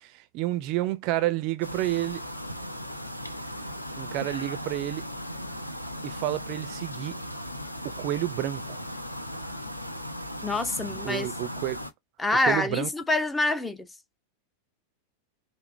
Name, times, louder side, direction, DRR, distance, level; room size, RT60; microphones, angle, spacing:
voice 1, 0.0-2.2 3.9-5.0 6.0-7.1 7.8-8.8 10.9-11.8 12.4-12.9, right 15 dB, 40° right, 0.5 m, -30 dB
sound 1, 1.6-11.9, equal, 85° left, 0.6 m, -37 dB
voice 2, 10.4-11.3 12.2-13.9, left 2 dB, 10° left, 0.6 m, -26 dB
5.7 x 2.0 x 3.1 m
figure-of-eight pair, 90°, 0 cm